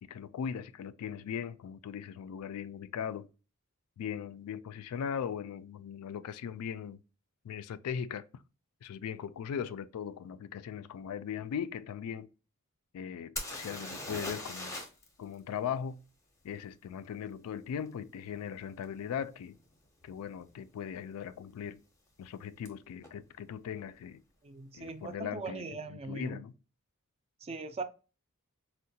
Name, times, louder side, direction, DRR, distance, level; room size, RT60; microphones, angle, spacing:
voice 1, 0.0-3.3 4.0-7.0 7.4-8.4 8.8-12.3 12.9-14.8 15.2-16.0 16.4-19.6 20.0-21.8 22.2-24.2 24.7-26.5, left 8 dB, 80° left, 0.3 m, -39 dB
sound 1, 13.4-15.1 15.3-15.4 18.8-18.9 19.6-19.8 20.0-20.6 22.7-22.8 23.0-23.1, left 2 dB, 15° left, 0.6 m, -40 dB
voice 2, 24.4-26.4 27.4-27.8, right 3 dB, 25° right, 0.3 m, -40 dB
4.6 x 2.1 x 2.7 m
head